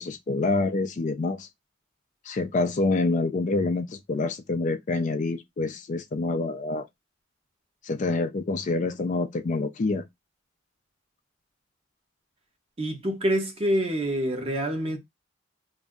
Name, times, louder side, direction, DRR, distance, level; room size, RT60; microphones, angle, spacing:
voice 1, 0.0-1.5 2.3-6.9 7.8-10.0, left 3 dB, 40° left, 0.4 m, -27 dB
voice 2, 12.8-15.0, equal, 30° right, 0.9 m, -26 dB
2.6 x 2.0 x 3.5 m
head